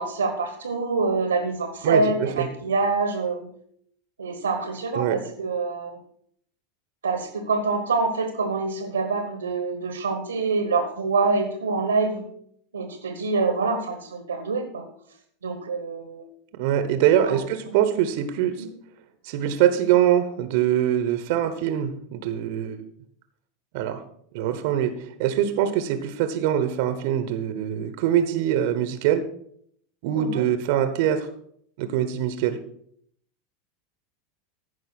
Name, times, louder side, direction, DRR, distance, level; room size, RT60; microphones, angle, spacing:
voice 1, 0.0-3.5 4.2-6.0 7.0-12.2 12.7-14.8 15.4-16.2 17.3-17.4 18.6-18.7 30.1-30.4, right 3 dB, 80° right, 6 dB, 1.3 m, -26 dB
voice 2, 1.8-2.5 4.9-5.2 16.6-18.6 19.2-22.8 23.7-24.0 24.3-29.2 30.0-31.3 31.8-32.6, right 10 dB, 55° right, 11 dB, 1.0 m, -23 dB
15.0 x 5.5 x 5.8 m, 0.65 s
figure-of-eight pair, 85°, 0 cm